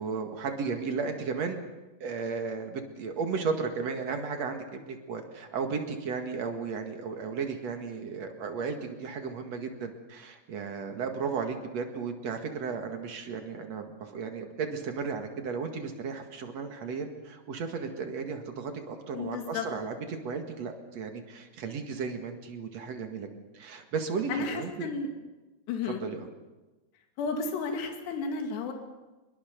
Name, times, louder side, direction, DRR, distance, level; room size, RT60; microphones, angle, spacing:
voice 1, 0.0-1.6 2.0-23.3 23.5-24.9 25.9-26.3, right 5 dB, 50° right, 5 dB, 2.4 m, -34 dB
voice 2, 19.1-19.7 24.3-25.1 25.7-26.0 27.2-28.7, left 4 dB, 75° left, 4 dB, 4.3 m, -32 dB
25.0 x 21.5 x 6.8 m, 1.1 s
omnidirectional pair, 5.0 m